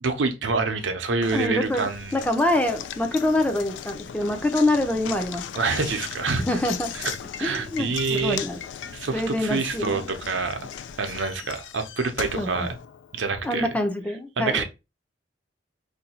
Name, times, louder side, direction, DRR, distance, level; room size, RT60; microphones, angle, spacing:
voice 1, 0.0-2.2 5.5-6.6 6.9-7.1 7.4-8.4 8.9-10.6 11.0-12.7 13.1-13.7 14.4-14.6, right 4 dB, 80° right, 0.7 m, -26 dB
Knock, 1.2-13.4, left 8 dB, 75° left, 0.3 m, -38 dB
voice 2, 1.3-5.4 6.5-6.9 7.4-8.6 9.1-10.1 12.4-12.7 13.4-14.6, left 1 dB, 10° left, 0.5 m, -25 dB
2.7 x 2.3 x 4.1 m
head